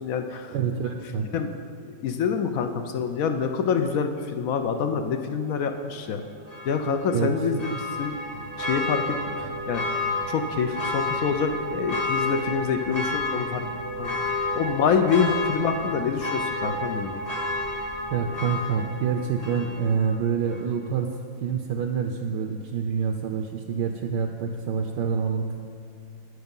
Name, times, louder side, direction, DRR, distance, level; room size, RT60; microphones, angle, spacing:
voice 1, 0.0-0.5 1.3-1.5 1.8-6.2 6.6-8.2 8.6-9.8 10.3-13.7 14.0-17.2, left 6 dB, 70° left, 7 dB, 0.8 m, -26 dB
voice 2, 0.5-1.3 7.1-7.3 7.7-7.8 18.1-21.1 21.4-25.6, right 6 dB, 75° right, 4 dB, 1.2 m, -27 dB
Church bell, 6.5-20.1 20.5-20.6, left 2 dB, 30° left, 0.8 m, -30 dB
9.2 x 8.0 x 5.3 m, 2.3 s
omnidirectional pair, 2.0 m